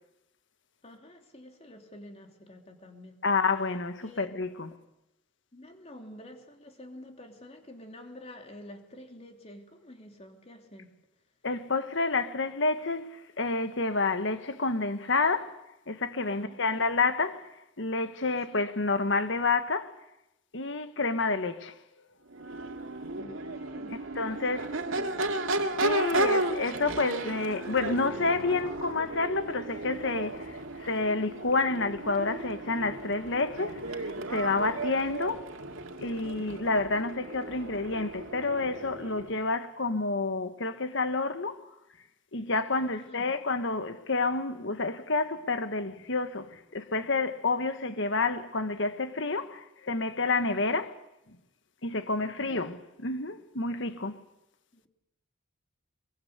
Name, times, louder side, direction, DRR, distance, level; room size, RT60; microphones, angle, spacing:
voice 1, 0.8-3.2 4.0-4.3 5.5-10.9 16.3-16.8 18.2-18.7 23.1-25.8 26.1-26.4 42.9-43.4 50.6-50.8 52.2-52.6 54.7-54.9, left 1 dB, 30° left, 3.2 m, -49 dB
voice 2, 3.2-4.7 11.4-15.5 15.9-17.5 17.8-19.9 20.5-21.7 24.2-24.6 25.8-35.4 36.0-41.6 42.3-50.9 51.8-54.2, left 3 dB, 65° left, 1.5 m, -29 dB
Crowd / Race car auto racing / Accelerating revving vroom, 22.3-39.4, right 2 dB, 80° right, 2.2 m, -34 dB
24.0 x 23.0 x 8.2 m
head